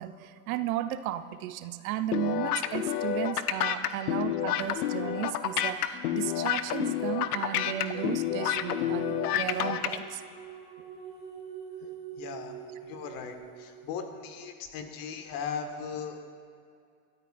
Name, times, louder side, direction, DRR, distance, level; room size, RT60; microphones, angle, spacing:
voice 1, 0.0-10.2 11.8-11.9, right 12 dB, 65° right, 12 dB, 0.7 m, -34 dB
sound 1, 2.1-10.0, left 11 dB, 75° left, 0.8 m, -29 dB
sound 2, 6.4-14.2, right 8 dB, 15° right, 3.1 m, -44 dB
voice 2, 12.2-12.6 12.8-16.3, left 6 dB, 45° left, 5 dB, 1.8 m, -38 dB
23.0 x 13.0 x 2.6 m, 2.3 s
hypercardioid pair, 100°, 46 cm